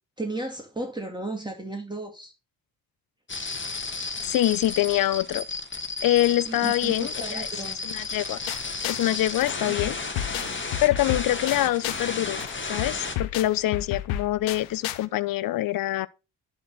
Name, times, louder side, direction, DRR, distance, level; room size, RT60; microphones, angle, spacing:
voice 1, 0.2-2.3 6.5-7.8 9.6-9.7, right 2 dB, 10° right, 2.6 m, -34 dB
sound 1, 3.3-13.1, left 4 dB, 25° left, 2.0 m, -33 dB
voice 2, 4.2-5.5 6.0-7.5 7.8-8.4 8.9-10.0 10.8-12.4 12.7-16.1, left 14 dB, 45° left, 0.7 m, -25 dB
sound 2, 8.5-9.1 9.4-12.1 12.4-15.1, left 12 dB, 65° left, 1.0 m, -33 dB
11.0 x 4.1 x 7.3 m
hypercardioid pair, 45°, 49 cm